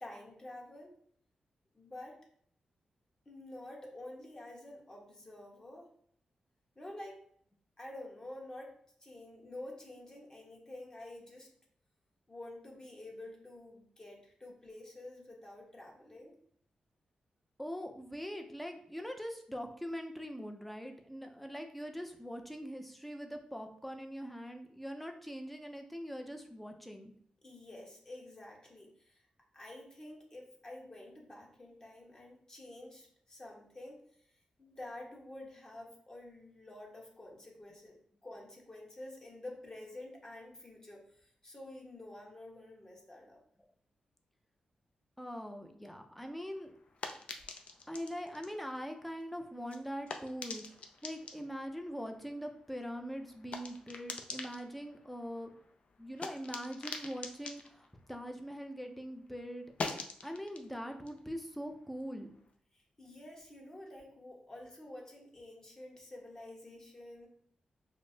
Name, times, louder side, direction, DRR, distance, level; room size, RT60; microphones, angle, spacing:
voice 1, 0.0-0.9 1.7-2.2 3.2-5.9 6.7-7.2 7.8-11.5 12.3-16.4 27.4-29.2 29.5-34.0 34.6-37.9 38.2-43.4 62.7-67.3, left 1 dB, 25° left, -2 dB, 1.2 m, -49 dB
voice 2, 17.6-27.1 45.2-46.7 47.9-55.5 56.0-59.7 60.2-62.3, equal, 5° left, 4 dB, 0.5 m, -42 dB
sound 1, 46.2-59.0 59.2-62.5, left 4 dB, 60° left, 0.4 m, -47 dB
5.1 x 2.1 x 2.7 m, 0.63 s
cardioid pair, 70°, 2 cm